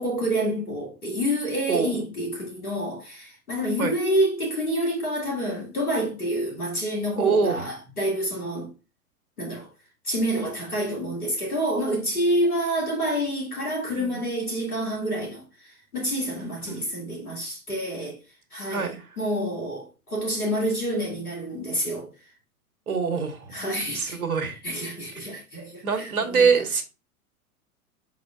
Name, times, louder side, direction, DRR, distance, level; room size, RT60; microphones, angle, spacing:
voice 1, 0.0-8.7 9.4-9.7 10.0-18.2 18.5-22.1 23.5-24.2 24.6-26.5, equal, 85° left, 2.0 m, -28 dB
voice 2, 7.2-7.7 14.0-14.2 16.4-16.8 18.7-19.1 22.9-23.5 23.9-24.6 25.8-26.8, right 5 dB, 75° right, 1.1 m, -24 dB
5.3 x 3.8 x 2.3 m
figure-of-eight pair, 95°, 43 cm